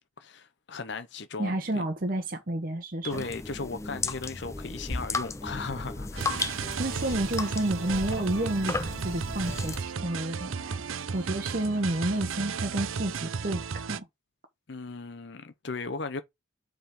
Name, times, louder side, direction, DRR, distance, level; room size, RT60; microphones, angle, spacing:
voice 1, 0.2-1.8 3.0-6.8 14.7-16.2, left 4 dB, 55° left, 0.7 m, -37 dB
voice 2, 1.4-3.3 6.8-10.8 11.1-14.1, right 1 dB, 45° right, 1.0 m, -30 dB
sound 1, 3.1-9.8, left 3 dB, 15° left, 0.4 m, -35 dB
sound 2, 6.2-14.0, right 6 dB, 85° right, 0.6 m, -34 dB
7.1 x 3.7 x 5.2 m
head